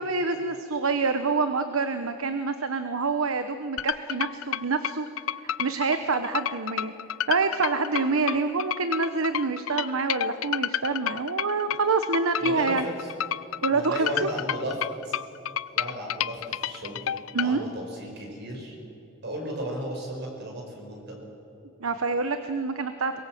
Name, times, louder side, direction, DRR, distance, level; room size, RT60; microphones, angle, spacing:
voice 1, 0.0-5.1 5.4-6.9 7.3-12.9 13.6-14.3 17.3-17.6 21.8-23.1, right 4 dB, 85° right, 9 dB, 1.0 m, -26 dB
sound 1, 3.8-17.5, left 10 dB, 75° left, 0.5 m, -30 dB
voice 2, 12.4-13.0 13.7-15.2 15.7-18.8 19.2-21.2, equal, 55° right, 1 dB, 5.4 m, -35 dB
23.0 x 21.5 x 7.7 m, 2.9 s
head